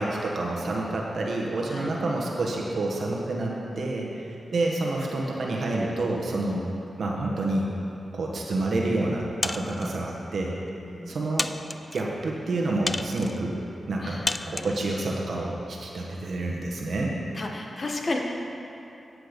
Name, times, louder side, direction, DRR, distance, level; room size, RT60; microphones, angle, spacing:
voice 1, 0.0-6.6 7.0-7.7 8.1-10.5 11.1-11.5 11.9-13.6 13.9-17.2, right 2 dB, 70° right, -2 dB, 1.2 m, -28 dB
voice 2, 3.7-4.2 6.4-6.6 9.6-9.9 10.9-11.4 14.0-14.7 17.3-18.2, left 2 dB, 50° left, 1 dB, 1.3 m, -35 dB
sound 1, 9.4-10.0 10.7-10.8 11.4-12.0 12.9-13.4 14.3-14.8, left 2 dB, 30° left, 0.3 m, -31 dB
10.0 x 7.7 x 5.2 m, 2.9 s
cardioid pair, 60°, 0 cm